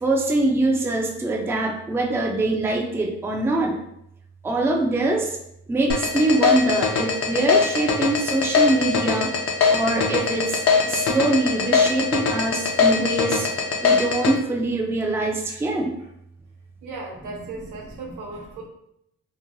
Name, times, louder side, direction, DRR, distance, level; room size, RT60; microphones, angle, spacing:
voice 1, 0.0-3.8 4.4-5.4 5.7-9.3 9.7-13.5 13.8-16.0, right 2 dB, 10° right, 1 dB, 0.4 m, -23 dB
sound 1, 5.9-14.3, left 5 dB, 50° left, 0.6 m, -20 dB
voice 2, 16.8-18.7, right 3 dB, 85° right, 0 dB, 0.8 m, -36 dB
3.0 x 2.1 x 2.6 m, 0.75 s
cardioid pair, 90°, 30 cm